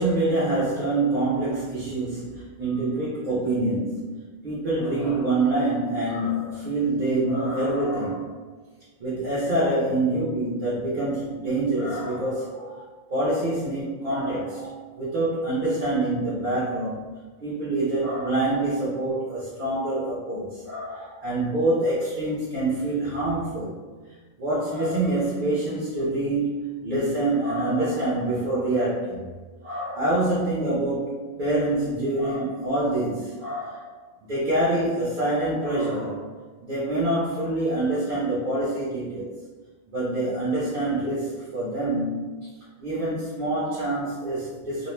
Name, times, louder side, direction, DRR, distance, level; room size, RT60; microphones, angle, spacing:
voice 1, 0.0-8.3 9.0-12.8 13.1-17.0 17.4-23.8 24.4-29.2 29.6-33.9 34.3-36.3 36.6-39.3 39.9-42.5 42.8-44.9, right 2 dB, 45° right, -9 dB, 0.7 m, -26 dB
2.4 x 2.1 x 3.0 m, 1.4 s
omnidirectional pair, 1.4 m